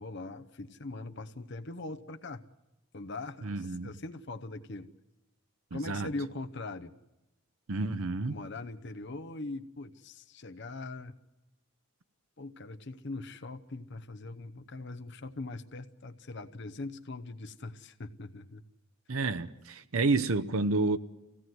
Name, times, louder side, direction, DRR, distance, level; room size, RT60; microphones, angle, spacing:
voice 1, 0.0-2.4 2.9-4.9 5.7-6.9 8.3-11.2 12.4-18.6, left 2 dB, 55° left, 0.9 m, -41 dB
voice 2, 3.4-3.9 5.7-6.1 7.7-8.4 19.1-21.0, right 3 dB, 75° right, 0.8 m, -29 dB
25.5 x 17.0 x 7.8 m
head